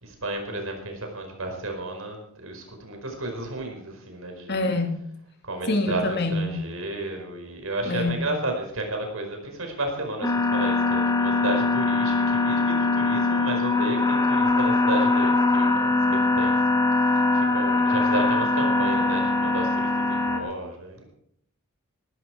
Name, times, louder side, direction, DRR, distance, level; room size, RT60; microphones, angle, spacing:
voice 1, 0.0-4.6 5.4-21.0, right 2 dB, 85° right, 3 dB, 5.0 m, -33 dB
voice 2, 4.5-5.0 5.7-6.6 7.9-8.3, left 2 dB, 55° left, 4 dB, 2.5 m, -25 dB
sound 1, 10.2-20.4, left 3 dB, 15° left, 2.0 m, -22 dB
19.0 x 13.0 x 4.7 m, 0.67 s
head